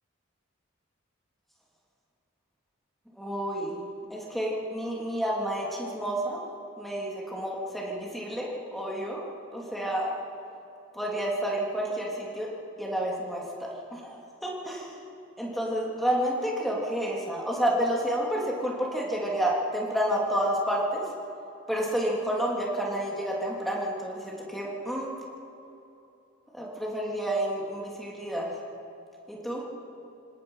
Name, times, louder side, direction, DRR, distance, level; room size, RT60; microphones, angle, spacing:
voice 1, 3.2-6.4 6.8-9.2 9.5-10.1 10.9-12.5 12.8-15.0 15.4-21.0 21.7-25.1 26.5-28.5 29.3-29.6, equal, ahead, -3 dB, 3.2 m, -30 dB
27.5 x 17.5 x 5.7 m, 2.8 s
head